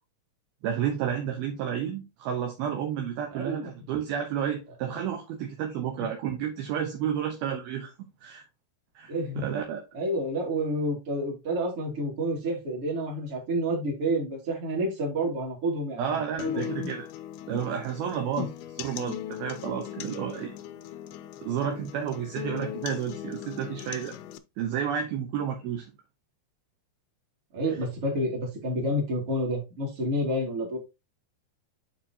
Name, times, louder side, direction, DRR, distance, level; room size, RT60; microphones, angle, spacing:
voice 1, 0.6-7.9 8.2-8.4 9.0-9.1 9.4-9.8 16.0-17.1 17.5-18.5 18.8-20.5 21.4-24.1 24.6-25.9, right 8 dB, 70° right, 2.6 m, -31 dB
voice 2, 3.3-3.7 9.1-9.4 9.9-16.9 17.5-17.6 18.4-18.5 27.5-30.8, right 1 dB, 35° right, 3.1 m, -29 dB
sound 1, 16.4-24.4, left 12 dB, 80° left, 2.3 m, -38 dB
9.0 x 4.6 x 2.8 m
omnidirectional pair, 5.0 m